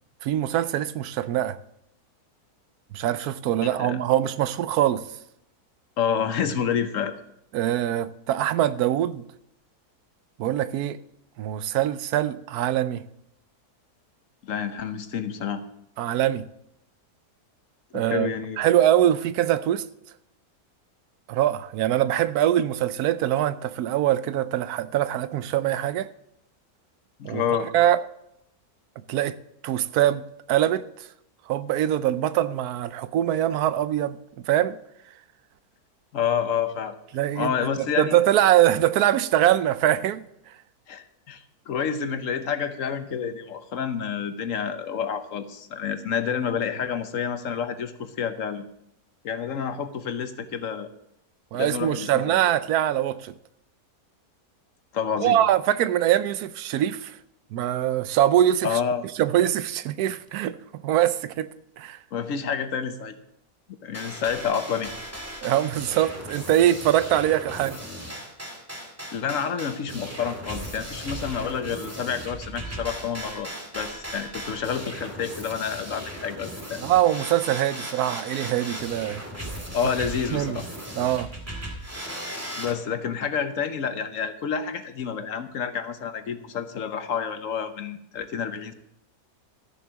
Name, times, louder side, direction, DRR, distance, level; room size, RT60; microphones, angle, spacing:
voice 1, 0.2-1.6 2.9-5.0 7.5-9.2 10.4-11.0 11.4-13.0 16.0-16.4 17.9-18.3 18.6-19.8 21.3-26.1 27.2-27.4 27.7-28.0 29.1-29.3 29.6-30.8 31.5-34.2 34.5-34.8 37.1-40.2 51.5-53.3 55.2-57.2 57.5-58.8 59.2-60.6 60.8-61.5 61.8-62.0 65.4-67.8 76.8-79.2 80.3-80.6 80.9-81.3, right 12 dB, 80° right, 1.1 m, -23 dB
voice 2, 6.0-7.1 14.4-15.6 17.9-18.7 27.2-27.7 36.1-36.9 37.3-38.2 40.9-48.6 49.2-50.9 51.5-52.4 54.9-55.4 58.6-59.0 62.1-63.2 63.8-64.9 69.1-76.8 79.7-80.7 82.6-88.7, left 7 dB, 60° left, 1.2 m, -29 dB
sound 1, 63.9-82.7, equal, 10° right, 2.0 m, -37 dB
13.5 x 7.1 x 6.2 m
omnidirectional pair, 1.6 m